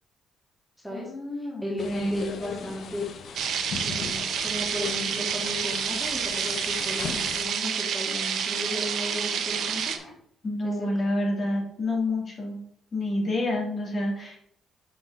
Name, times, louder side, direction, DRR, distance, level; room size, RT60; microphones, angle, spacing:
voice 1, 0.9-2.7 10.4-12.6 12.9-14.4, left 1 dB, 45° left, -3 dB, 3.3 m, -29 dB
voice 2, 1.6-3.0 3.8-10.0 10.6-10.9, left 1 dB, ahead, -3 dB, 1.9 m, -35 dB
sound 1, 1.8-7.4, left 6 dB, 65° left, 0.9 m, -38 dB
sound 2, 3.3-10.2, left 1 dB, 20° left, 2.9 m, -49 dB
sound 3, 3.3-10.0, right 7 dB, 70° right, 0.9 m, -29 dB
6.2 x 5.9 x 4.1 m, 0.67 s
cardioid pair, 90°, 0 cm